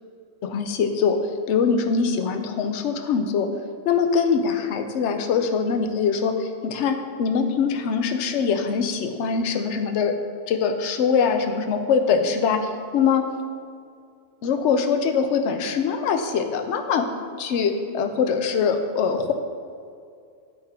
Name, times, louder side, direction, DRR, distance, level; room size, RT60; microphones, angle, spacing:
voice 1, 0.4-1.2 1.5-3.5 3.8-10.2 10.5-13.3 14.4-17.1 17.4-19.3, left 6 dB, 75° left, 7 dB, 0.9 m, -23 dB
10.5 x 3.6 x 4.3 m, 2.3 s
omnidirectional pair, 1.2 m